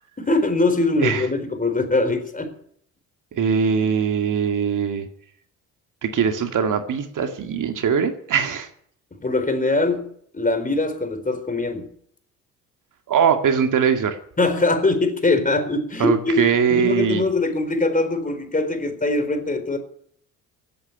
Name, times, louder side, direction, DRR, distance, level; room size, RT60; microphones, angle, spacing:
voice 1, 0.2-2.5 9.2-10.1 10.3-11.9 14.4-16.4 16.7-19.8, left 2 dB, 20° left, 8 dB, 4.3 m, -22 dB
voice 2, 3.3-5.1 6.0-8.7 13.1-14.2 16.0-17.2, right 7 dB, 55° right, 6 dB, 2.2 m, -21 dB
16.0 x 8.7 x 9.9 m, 0.64 s
hypercardioid pair, 60°, 38 cm